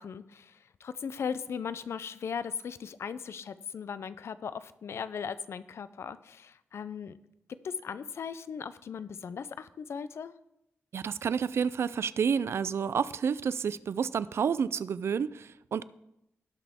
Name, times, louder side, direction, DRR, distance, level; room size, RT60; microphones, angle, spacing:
voice 1, 0.0-7.2 7.6-10.3, left 6 dB, 65° left, 15 dB, 0.4 m, -38 dB
voice 2, 10.9-15.8, right 7 dB, 65° right, 18 dB, 0.3 m, -30 dB
18.0 x 6.0 x 3.5 m, 0.85 s
wide cardioid pair, 155°, 5 cm